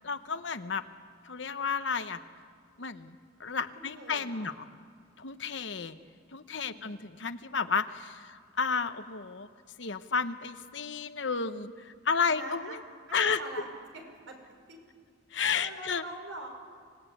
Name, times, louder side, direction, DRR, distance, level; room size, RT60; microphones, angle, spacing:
voice 1, 0.0-0.8 1.2-2.2 2.8-4.7 5.2-6.0 6.3-9.5 9.8-12.8 13.1-13.4 15.3-16.0, left 5 dB, 65° left, 10 dB, 1.0 m, -32 dB
voice 2, 3.8-4.5 6.6-7.0 12.3-12.8 13.2-13.7 13.9-14.4 14.7-14.8 15.6-16.5, right 1 dB, 75° right, 3 dB, 5.2 m, -44 dB
26.5 x 17.5 x 9.3 m, 2.1 s
head